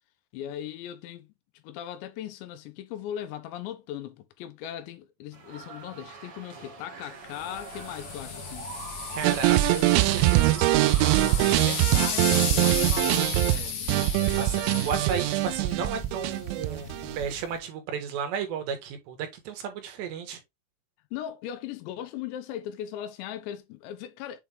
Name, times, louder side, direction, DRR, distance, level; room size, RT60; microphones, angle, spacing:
voice 1, 0.3-8.8 11.6-15.0 21.1-24.4, left 11 dB, 85° left, 3.2 m, -39 dB
sound 1, 5.3-13.7, right 3 dB, 50° right, 1.8 m, -44 dB
sound 2, 7.3-17.6, left 6 dB, 65° left, 1.7 m, -35 dB
voice 2, 9.1-11.6 14.3-20.4, right 6 dB, 75° right, 3.6 m, -34 dB
sound 3, 9.2-17.3, right 18 dB, 90° right, 2.9 m, -23 dB
7.9 x 3.5 x 3.4 m
omnidirectional pair, 5.2 m